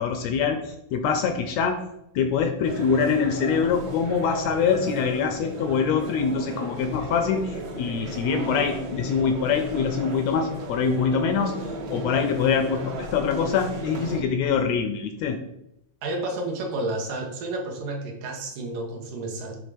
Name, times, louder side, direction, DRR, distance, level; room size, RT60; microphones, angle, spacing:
voice 1, 0.0-1.8 2.1-11.6 11.9-15.4, left 6 dB, 85° left, 7 dB, 1.5 m, -24 dB
sound 1, 2.6-14.2, equal, 60° right, 1.1 m, -35 dB
voice 2, 16.0-19.6, right 2 dB, 85° right, 1 dB, 2.8 m, -31 dB
8.1 x 3.5 x 5.1 m, 0.83 s
omnidirectional pair, 3.6 m